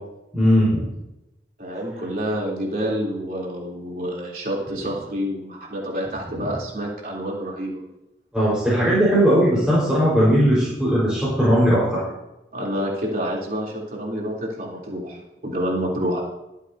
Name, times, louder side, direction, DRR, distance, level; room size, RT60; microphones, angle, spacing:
voice 1, 0.3-0.8 8.3-12.0, equal, 5° right, -10 dB, 5.1 m, -18 dB
voice 2, 1.6-7.8 12.5-16.2, equal, 50° right, -4 dB, 3.7 m, -28 dB
24.0 x 8.3 x 2.9 m, 0.93 s
head